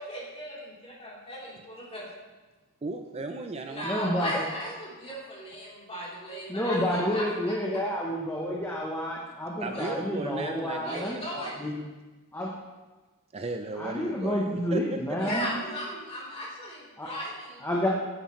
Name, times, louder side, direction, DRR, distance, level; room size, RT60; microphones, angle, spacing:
voice 1, 0.0-2.1 3.7-7.6 9.7-9.9 10.8-11.6 15.2-17.9, equal, 30° left, -7 dB, 3.6 m, -37 dB
voice 2, 2.8-3.9 9.6-11.5 13.3-14.8, right 3 dB, 30° right, 5 dB, 0.5 m, -36 dB
voice 3, 3.8-4.4 6.5-11.1 11.6-11.8 12.3-12.5 13.8-15.5 17.0-17.1 17.6-17.9, equal, 10° left, -3 dB, 1.0 m, -29 dB
10.5 x 9.4 x 3.2 m, 1.2 s
head